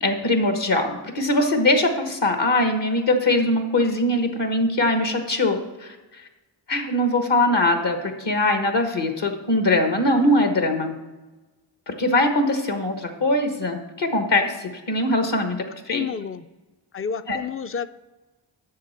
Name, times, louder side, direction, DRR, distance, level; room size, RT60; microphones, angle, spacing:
voice 1, 0.0-6.3 6.7-10.9 11.9-16.0 17.3-17.4, left 1 dB, 60° left, 5 dB, 1.4 m, -22 dB
voice 2, 15.9-16.5 16.9-17.9, left 7 dB, 30° left, 14 dB, 0.4 m, -29 dB
7.6 x 6.7 x 5.7 m, 1.1 s
cardioid pair, 55°, 48 cm